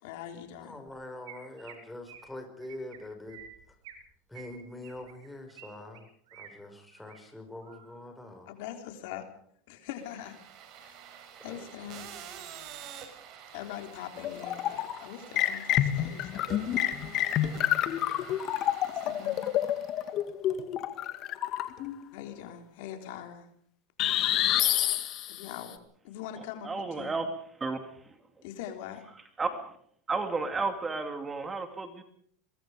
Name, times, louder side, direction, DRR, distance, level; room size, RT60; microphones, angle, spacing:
voice 1, 0.0-0.8 8.5-9.3 9.7-10.4 10.8-10.9 11.4-12.1 13.5-17.0 18.9-19.4 22.1-23.5 25.3-25.8 26.0-27.2 28.4-29.0, left 10 dB, 70° left, 6 dB, 3.7 m, -42 dB
voice 2, 0.6-3.4 4.3-8.5 11.4-12.1, left 1 dB, 5° left, 5 dB, 5.6 m, -44 dB
Chirp tweet, 0.9-1.0 1.3-1.7 2.1-2.3 2.6-3.0 3.3-4.0 4.3-5.7 5.9-6.5 6.9-7.2 7.6-8.0, right 10 dB, 75° right, 5.7 m, -50 dB
sound 1, 10.0-20.1, right 8 dB, 50° right, 5.1 m, -48 dB
sound 2, 14.2-15.0 15.4-21.9 24.0-25.6, left 12 dB, 45° left, 2.1 m, -28 dB
voice 3, 26.6-27.3 27.6-27.8 29.4-29.6 30.1-32.0, right 3 dB, 20° right, 7 dB, 2.5 m, -32 dB
23.0 x 22.5 x 5.1 m, 0.64 s
supercardioid pair, 120°, 0 cm